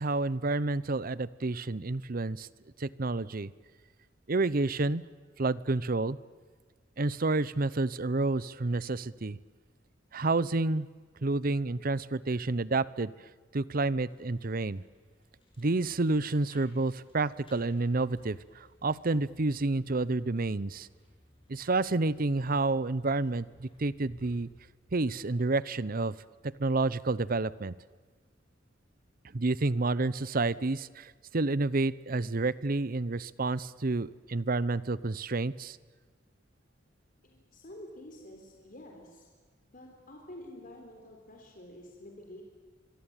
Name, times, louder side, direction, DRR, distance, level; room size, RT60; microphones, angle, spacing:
voice 1, 0.0-2.5 2.8-3.5 4.3-5.0 5.4-6.2 7.0-9.4 10.1-10.9 11.2-13.1 13.5-14.8 15.6-20.9 21.5-24.5 24.9-26.1 26.4-27.7 29.3-35.8, right 3 dB, 50° right, 19 dB, 0.8 m, -29 dB
sound 1, 14.1-24.7, equal, 30° left, 6.8 m, -62 dB
voice 2, 37.2-39.3 39.7-42.4, left 1 dB, 45° left, 1 dB, 4.2 m, -49 dB
24.5 x 24.5 x 9.1 m, 1.4 s
head